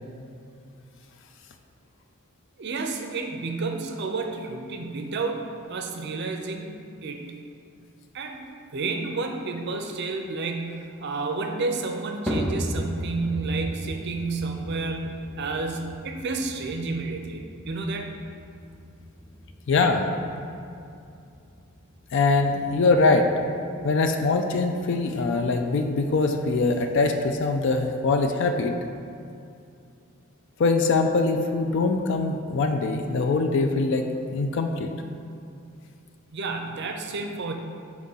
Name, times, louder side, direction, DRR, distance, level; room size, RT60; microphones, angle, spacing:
voice 1, 2.6-7.3 8.1-8.5 8.7-18.1 36.3-37.5, right 3 dB, 50° right, 4 dB, 0.5 m, -31 dB
sound 1, 12.3-28.7, equal, ahead, 0.6 m, -38 dB
voice 2, 19.7-20.0 22.1-23.3 23.8-28.8 30.6-34.9, left 3 dB, 55° left, 5 dB, 0.4 m, -23 dB
4.7 x 3.7 x 5.5 m, 2.5 s
head